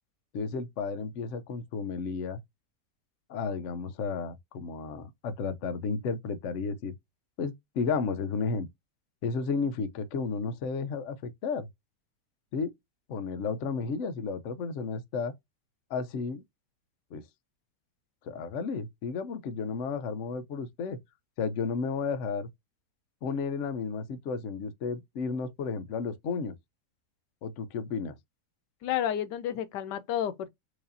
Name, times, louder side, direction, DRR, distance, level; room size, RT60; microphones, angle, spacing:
voice 1, 0.3-2.4 3.3-6.9 7.4-8.7 9.2-11.7 12.5-12.7 13.1-15.3 15.9-16.4 17.1-17.2 18.2-21.0 21.4-22.5 23.2-26.5 27.4-28.2, left 5 dB, 60° left, 0.8 m, -33 dB
voice 2, 28.8-30.5, left 10 dB, 90° left, 1.3 m, -31 dB
4.8 x 2.6 x 2.6 m
omnidirectional pair, 1.8 m